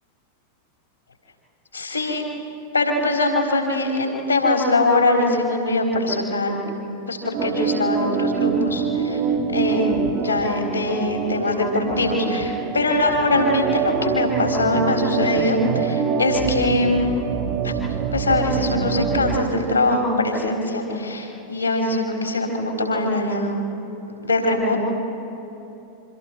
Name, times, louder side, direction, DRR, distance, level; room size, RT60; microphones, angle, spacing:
voice 1, 1.7-2.3 2.7-6.6 7.1-9.2 9.5-17.1 17.6-17.7 18.1-23.5 24.2-24.8, left 2 dB, 80° left, 1 dB, 3.9 m, -22 dB
Organ, 7.3-19.5, right 6 dB, 40° right, 1.4 m, -25 dB
27.0 x 24.5 x 4.5 m, 3.0 s
figure-of-eight pair, 90°, 0 cm